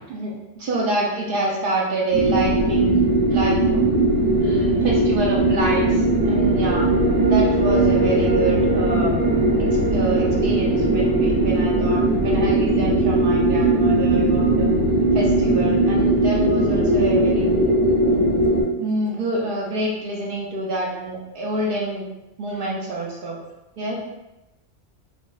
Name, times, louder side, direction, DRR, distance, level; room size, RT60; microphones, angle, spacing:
voice 1, 0.1-3.8 4.4-6.9 7.2-9.1 9.6-14.7 15.1-17.4 18.0-18.3 18.8-22.1 22.4-23.4 23.8-24.0, right 2 dB, 60° right, -3 dB, 0.6 m, -27 dB
sound 1, 2.1-18.6, right 2 dB, 85° right, 1.0 m, -19 dB
voice 2, 4.3-5.0 15.3-15.8 19.1-19.2 22.5-22.8 23.8-24.0, left 1 dB, 85° left, 0 dB, 0.9 m, -38 dB
3.4 x 2.0 x 2.3 m, 0.96 s
omnidirectional pair, 1.2 m